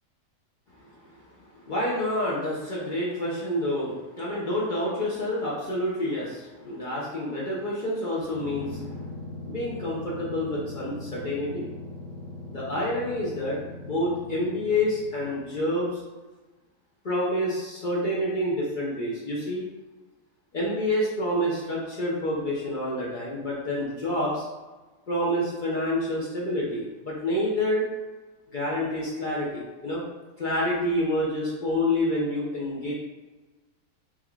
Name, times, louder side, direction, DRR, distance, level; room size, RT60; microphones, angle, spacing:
voice 1, 1.7-8.8 9.5-11.7 12.5-13.6 13.8-16.0 17.0-19.6 20.5-24.5 25.1-27.8 28.5-30.1 30.4-32.9, left 1 dB, 65° left, -6 dB, 0.4 m, -28 dB
sound 1, 8.2-15.6, left 2 dB, 80° right, 1.5 m, -40 dB
3.5 x 3.0 x 2.3 m, 1.2 s
omnidirectional pair, 1.6 m